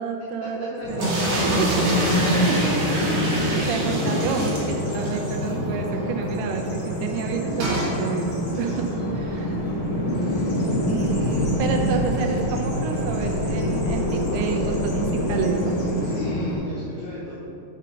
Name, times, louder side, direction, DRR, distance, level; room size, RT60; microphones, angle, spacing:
voice 1, 0.0-1.3 2.1-9.6 10.9-15.8, right 6 dB, 80° right, 3 dB, 2.5 m, -30 dB
voice 2, 0.8-1.5 8.5-10.0 16.0-17.3, left 1 dB, 70° left, -8 dB, 1.7 m, -37 dB
Bird vocalization bird call bird song, 0.8-16.6, equal, 45° left, 1.1 m, -26 dB
sound 1, 1.0-5.2 5.5-5.6 5.8-5.9 7.6-7.9, equal, 60° right, 2.0 m, -25 dB
sound 2, 6.5-6.6 7.3-7.9 9.2-15.5, left 4 dB, 90° left, 2.8 m, -36 dB
5.6 x 5.1 x 6.3 m, 2.8 s
omnidirectional pair, 4.8 m